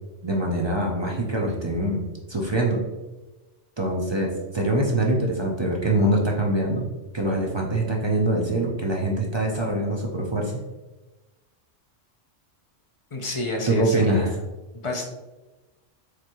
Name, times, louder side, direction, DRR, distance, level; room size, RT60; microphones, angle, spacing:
voice 1, 0.2-2.0 2.3-2.8 3.8-6.8 7.1-10.6 13.7-14.3, right 1 dB, 35° right, -1 dB, 0.4 m, -24 dB
voice 2, 13.1-14.4 14.8-15.0, left 2 dB, 30° left, 0 dB, 0.7 m, -29 dB
4.9 x 3.4 x 3.0 m, 1.1 s
omnidirectional pair, 1.3 m